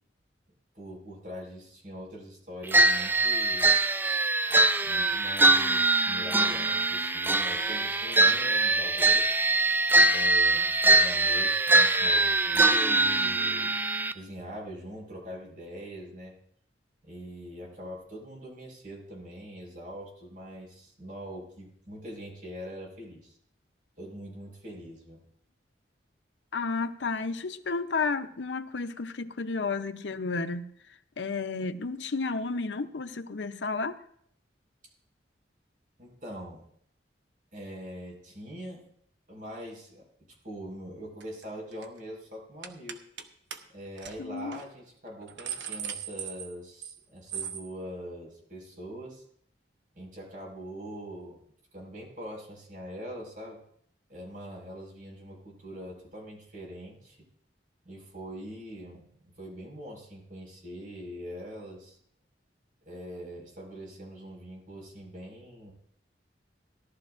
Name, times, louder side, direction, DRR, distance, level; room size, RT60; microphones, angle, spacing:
voice 1, 0.7-3.7 4.8-9.4 10.1-13.7 14.1-16.3 17.0-23.4 24.0-25.2 36.0-36.6 37.5-38.8 39.3-40.1 40.4-43.0 43.7-49.2 49.9-51.4 51.7-53.6 54.1-57.2 57.8-62.0 62.8-65.7, equal, 50° right, 5.2 m, -43 dB
sound 1, 2.7-14.1, right 2 dB, 10° right, 0.3 m, -23 dB
voice 2, 26.5-30.7 31.2-34.0 44.2-44.6, left 4 dB, 85° left, 0.7 m, -32 dB
sound 2, 41.2-41.4 41.7-42.0 42.6-43.2 43.5-43.6 44.0-44.1 44.5-44.6 45.1-47.0 47.3-47.7, right 8 dB, 85° right, 1.0 m, -38 dB
17.5 x 12.0 x 2.5 m
head